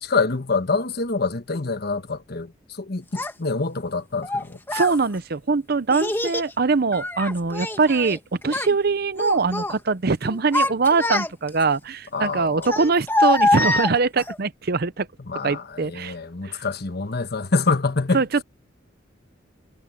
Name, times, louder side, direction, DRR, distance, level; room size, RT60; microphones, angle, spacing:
voice 1, 0.0-2.5 2.8-3.0 3.4-4.8 12.1-12.7 15.3-18.2, left 4 dB, 55° left, 1.2 m, -25 dB
Child speech kid speaking, 3.2-3.3 4.2-5.0 5.9-6.5 6.9-8.2 8.4-8.8 9.2-9.8 10.3-11.6 12.6-14.4, left 2 dB, 10° left, 1.8 m, -24 dB
voice 2, 4.7-15.1 15.4-16.1 16.4-16.6 18.1-18.4, right 4 dB, 55° right, 0.7 m, -22 dB
head